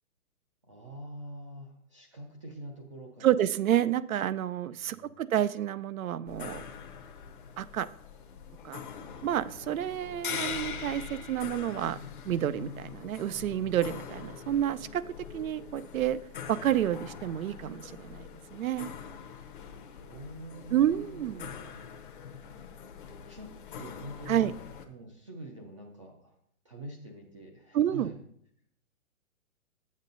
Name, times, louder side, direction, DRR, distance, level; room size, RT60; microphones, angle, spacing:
voice 1, 0.6-3.3 4.8-5.2 20.0-21.7 23.3-24.5 24.9-26.4 26.6-28.1, right 1 dB, 25° right, 0 dB, 0.5 m, -45 dB
voice 2, 3.2-6.6 7.6-7.9 8.6-8.8 9.2-12.0 12.2-15.0 15.3-16.2 16.5-18.9 20.7-21.5 24.3-24.5 27.7-28.1, right 11 dB, 70° right, 17 dB, 0.5 m, -29 dB
sound 1, 6.3-24.8, left 7 dB, 35° left, 0.7 m, -43 dB
7.4 x 7.3 x 3.9 m, 0.68 s
hypercardioid pair, 165°, 43 cm